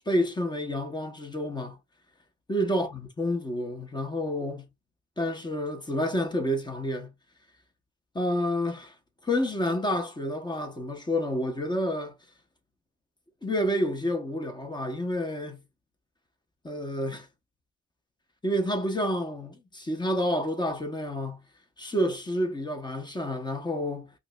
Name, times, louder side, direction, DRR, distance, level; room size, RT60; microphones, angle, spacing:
voice 1, 0.1-1.8 2.5-4.7 5.2-7.1 8.1-8.9 9.2-12.1 13.4-15.6 16.6-17.3 18.4-21.4 21.8-24.1, equal, 15° left, 0.9 m, -29 dB
5.0 x 2.1 x 2.3 m
cardioid pair, 90°, 30 cm